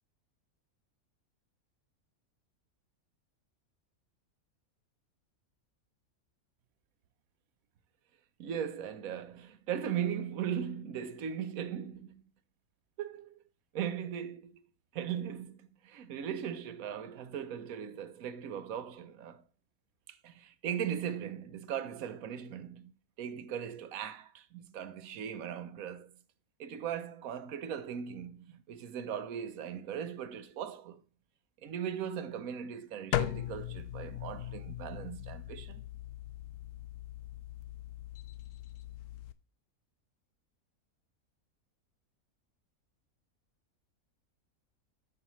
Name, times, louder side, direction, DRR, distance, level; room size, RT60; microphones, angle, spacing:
voice 1, 8.4-12.2 13.0-13.4 13.7-14.6 14.9-19.4 20.1-22.9 23.2-26.2 26.6-31.0 31.6-35.8, right 8 dB, 75° right, 1.2 m, -38 dB
sound 1, 33.1-39.3, left 13 dB, 85° left, 1.1 m, -39 dB
9.5 x 6.5 x 3.0 m
omnidirectional pair, 1.5 m